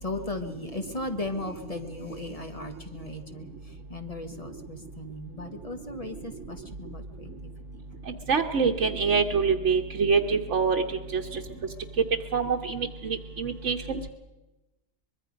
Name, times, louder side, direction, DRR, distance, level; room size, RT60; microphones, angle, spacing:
voice 1, 0.0-3.5 3.9-7.5, left 2 dB, 30° left, 5 dB, 1.3 m, -36 dB
voice 2, 8.3-10.8 11.1-11.4 12.3-14.0, right 5 dB, 75° right, 1 dB, 1.4 m, -25 dB
24.0 x 21.5 x 5.2 m, 1.1 s
omnidirectional pair, 1.3 m